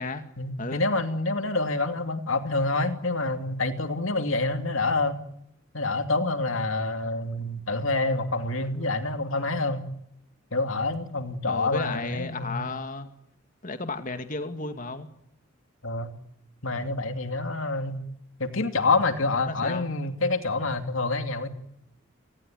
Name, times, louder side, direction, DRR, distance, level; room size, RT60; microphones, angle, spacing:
voice 1, 0.4-5.2 5.7-9.9 10.5-12.7 15.8-16.2 16.6-18.0 18.4-21.5, left 3 dB, 70° left, 7 dB, 2.7 m, -27 dB
voice 2, 11.5-13.1 13.6-15.1 19.4-19.9, left 3 dB, 40° left, 8 dB, 2.3 m, -33 dB
29.0 x 19.5 x 9.3 m, 0.75 s
head